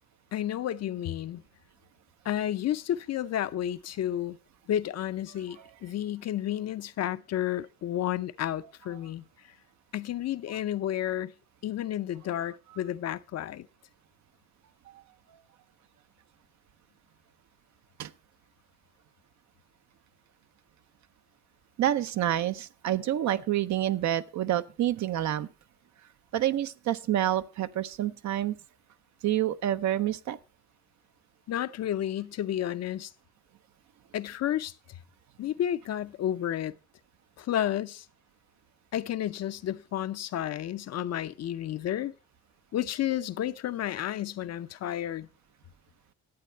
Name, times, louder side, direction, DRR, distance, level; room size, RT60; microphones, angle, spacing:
voice 1, 0.3-1.4 2.3-4.4 4.7-9.2 9.9-11.3 11.6-13.7 31.5-33.1 34.1-34.7 35.4-36.7 37.4-38.0 38.9-42.1 42.7-45.3, left 11 dB, 60° left, 0.6 m, -31 dB
voice 2, 21.8-25.5 26.3-28.6 29.2-30.4, right 12 dB, 65° right, 0.7 m, -28 dB
11.5 x 8.4 x 4.4 m
cardioid pair, 90°, 30 cm